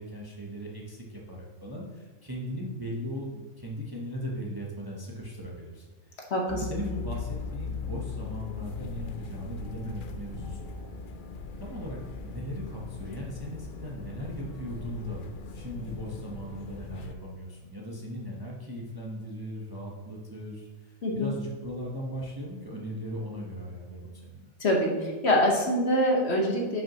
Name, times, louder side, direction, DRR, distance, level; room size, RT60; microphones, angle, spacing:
voice 1, 0.0-5.9 6.1-10.7 11.6-15.2 15.5-24.5, equal, 20° right, -3 dB, 0.9 m, -38 dB
sound 1, 6.5-17.1, left 5 dB, 75° left, 0.4 m, -39 dB
voice 2, 21.0-21.3 24.6-26.8, equal, 50° left, -1 dB, 1.4 m, -25 dB
11.0 x 5.6 x 3.0 m, 1.3 s
omnidirectional pair, 1.5 m